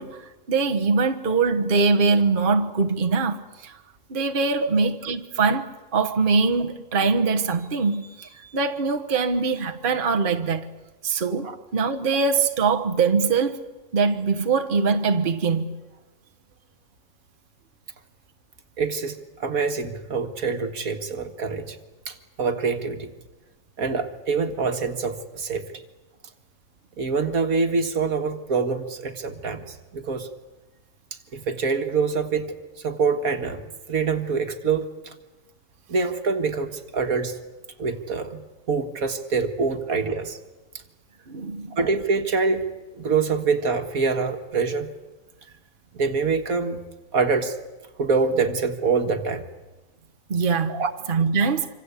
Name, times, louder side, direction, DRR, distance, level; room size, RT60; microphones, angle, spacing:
voice 1, 0.0-3.8 4.1-10.7 11.0-13.6 13.9-15.6 41.3-41.8 50.3-50.7 51.1-51.7, right 4 dB, 35° right, 1.5 m, -23 dB
voice 2, 18.8-21.8 22.1-23.1 23.8-25.6 27.0-30.3 31.3-35.1 35.9-37.4 37.8-40.4 41.8-42.7 43.0-44.9 45.9-46.8 47.1-47.6 48.0-49.4 50.7-50.9, right 4 dB, 65° right, 2.1 m, -25 dB
26.5 x 26.0 x 8.3 m
omnidirectional pair, 1.6 m